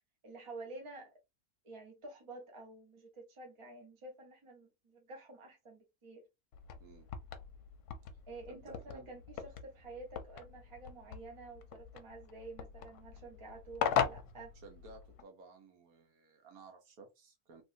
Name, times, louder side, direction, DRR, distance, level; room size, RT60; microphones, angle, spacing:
voice 1, 0.2-1.1 1.6-6.2 8.3-14.5, right 2 dB, 25° right, 0.8 m, -50 dB
sound 1, 6.5-15.2, left 8 dB, 85° left, 1.1 m, -40 dB
voice 2, 6.8-7.1 8.5-9.1 14.5-17.6, right 3 dB, 75° right, 1.4 m, -55 dB
3.3 x 2.5 x 2.6 m
omnidirectional pair, 1.6 m